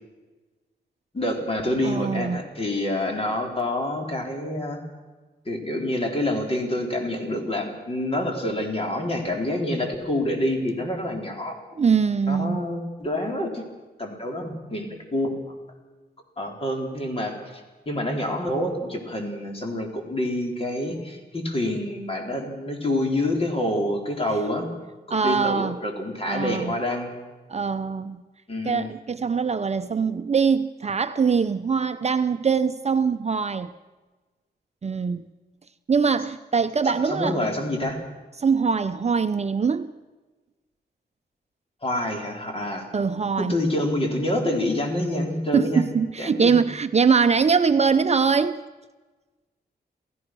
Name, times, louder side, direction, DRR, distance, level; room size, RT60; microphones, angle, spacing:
voice 1, 1.1-4.8 5.5-11.6 12.3-13.6 14.0-15.4 16.4-17.6 17.9-24.7 25.2-27.1 28.5-28.9 37.1-38.0 41.8-42.9 43.4-45.8 46.2-46.6, left 1 dB, 35° left, 4.2 m, -27 dB
voice 2, 1.8-2.4 11.8-12.7 25.1-25.8 26.3-26.8 27.5-28.2 28.6-33.7 34.8-35.2 35.9-37.5 38.4-39.9 42.9-43.6 45.5-48.6, right 5 dB, 40° right, 0.7 m, -22 dB
28.0 x 16.0 x 6.2 m
wide cardioid pair, 120°, 18 cm